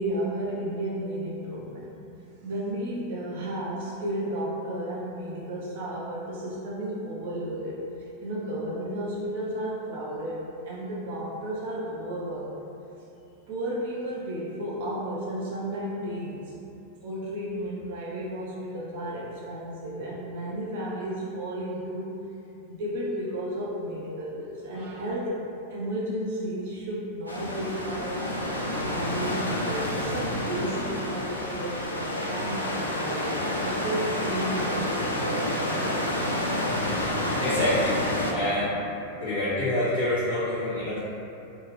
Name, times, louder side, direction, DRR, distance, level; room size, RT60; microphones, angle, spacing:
voice 1, 0.0-1.9 2.4-7.8 8.2-12.5 13.5-16.5 17.0-22.2 22.7-28.4 28.8-35.9, right 1 dB, 55° right, -5 dB, 0.4 m, -33 dB
sound 1, 27.3-38.3, left 1 dB, 80° left, 0.3 m, -29 dB
voice 2, 37.4-38.0 38.3-38.7 39.2-41.0, left 1 dB, 85° right, -15 dB, 0.8 m, -26 dB
2.7 x 2.4 x 2.4 m, 2.7 s
figure-of-eight pair, 90°, 0 cm